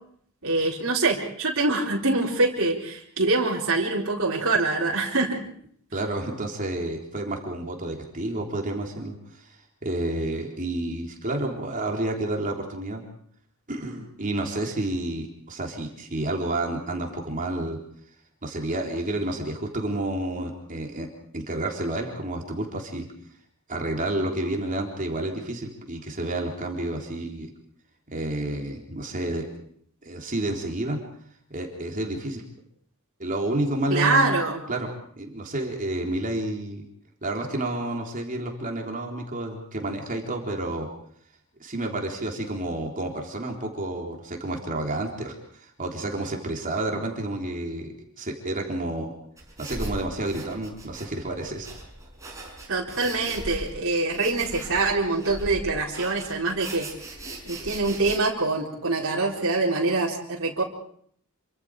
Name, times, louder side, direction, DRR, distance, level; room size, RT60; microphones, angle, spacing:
voice 1, 0.4-5.4 33.9-34.6 52.7-56.9 57.4-60.6, right 3 dB, 60° right, -4 dB, 4.5 m, -24 dB
voice 2, 5.9-9.5 9.8-13.0 13.7-17.8 18.4-21.1 21.3-23.1 23.7-27.5 28.1-29.5 30.0-31.0 31.5-32.4 33.2-34.4 34.7-34.9 35.2-36.8 37.2-40.9 41.6-49.1 49.6-51.7, right 1 dB, 40° right, 1 dB, 3.8 m, -30 dB
sound 1, 49.4-58.2, right 1 dB, 15° right, 5.5 m, -39 dB
28.0 x 25.0 x 4.9 m, 0.62 s
head